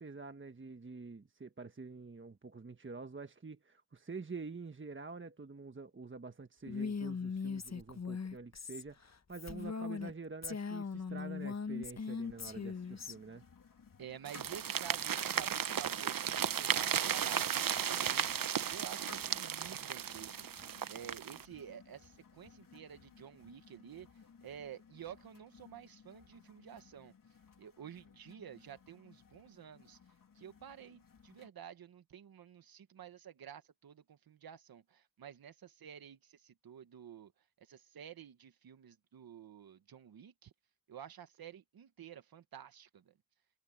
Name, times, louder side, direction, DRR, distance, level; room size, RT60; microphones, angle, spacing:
voice 1, 0.0-13.4, right 4 dB, 35° right, 1.5 m, -47 dB
Female speech woman speaking, 6.7-10.1 10.4-13.1, left 5 dB, 50° left, 1.3 m, -39 dB
sound 1, 12.2-31.5, left 6 dB, 65° left, 2.9 m, -60 dB
voice 2, 14.0-18.4 18.7-20.5 20.9-24.1 24.4-27.1 27.6-30.0 30.3-37.3 37.6-40.5 40.9-43.2, right 9 dB, 85° right, 1.5 m, -51 dB
sound 2, 14.3-21.4, right 9 dB, 70° right, 0.9 m, -35 dB
cardioid pair, 45°, 35 cm